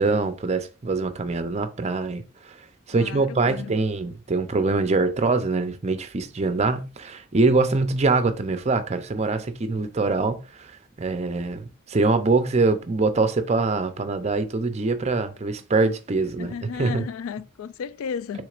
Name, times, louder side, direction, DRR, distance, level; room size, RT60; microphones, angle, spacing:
voice 1, 0.0-2.6 2.9-10.7 11.0-17.1, right 3 dB, 30° right, 0.5 m, -24 dB
voice 2, 2.9-3.7 16.4-18.5, left 6 dB, 90° left, 0.3 m, -34 dB
6.2 x 3.6 x 2.4 m
head